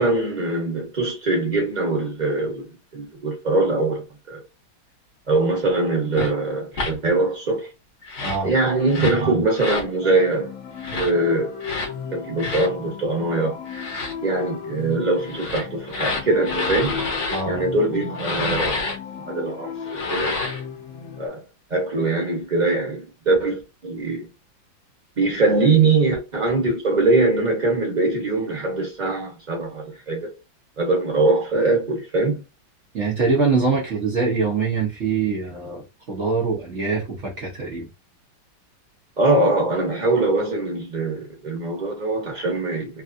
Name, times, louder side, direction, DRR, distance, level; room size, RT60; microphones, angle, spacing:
voice 1, 0.0-4.0 4.3-4.4 5.3-7.7 8.4-10.5 10.9-11.5 12.1-13.6 14.2-17.0 17.5-18.8 19.2-20.4 21.2-21.4 21.7-24.3 25.2-30.3 30.8-32.4 39.2-43.0, right 2 dB, 40° right, 0.6 m, -22 dB
sound 1, 6.1-6.3 6.7-6.9 8.0-8.4 8.9-9.2 9.6-9.9 10.8-11.1 11.6-11.9 12.4-12.7 13.7-14.1 15.2-17.4 18.2-19.0 19.8-20.6, left 3 dB, 50° left, 1.0 m, -28 dB
voice 2, 8.2-8.5 17.3-17.6 32.9-37.9, right 4 dB, 85° right, 0.6 m, -23 dB
sound 2, 10.0-21.3, left 7 dB, 75° left, 0.6 m, -35 dB
3.4 x 2.4 x 2.5 m
omnidirectional pair, 2.2 m